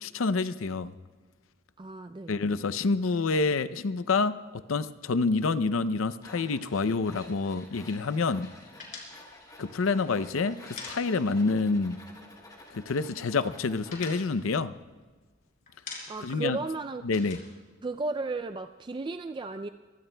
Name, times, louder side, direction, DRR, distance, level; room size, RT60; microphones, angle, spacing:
voice 1, 0.0-0.9 2.3-8.5 9.6-12.0 12.7-14.7 16.2-16.6 17.0-17.4, left 4 dB, 90° left, 14 dB, 0.6 m, -28 dB
voice 2, 1.8-2.3 16.1-17.0 17.8-19.7, right 3 dB, 25° right, 8 dB, 0.3 m, -34 dB
Tools, 6.2-14.1, left 2 dB, 20° left, 2.4 m, -51 dB
sound 1, 8.8-11.6 11.8-12.0 12.3-13.0 13.3-15.3 15.7-16.4 16.7-18.5, left 4 dB, 45° left, 4.4 m, -45 dB
23.5 x 23.5 x 2.2 m, 1.3 s
head